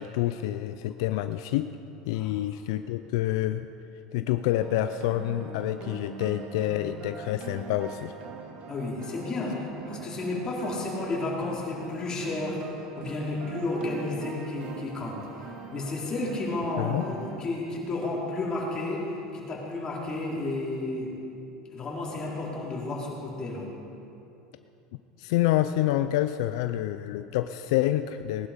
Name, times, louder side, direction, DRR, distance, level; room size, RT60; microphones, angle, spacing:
voice 1, 0.0-1.7 2.1-3.7 4.1-8.1 16.8-17.1 25.2-28.5, left 13 dB, 75° left, 10 dB, 0.5 m, -27 dB
sound 1, 4.6-17.4, right 5 dB, 50° right, 1.8 m, -42 dB
voice 2, 8.7-12.7 13.0-15.2 15.7-21.1 21.7-23.7, left 2 dB, 30° left, -4 dB, 4.1 m, -32 dB
20.0 x 11.5 x 5.2 m, 2.8 s
supercardioid pair, 115°, 3 cm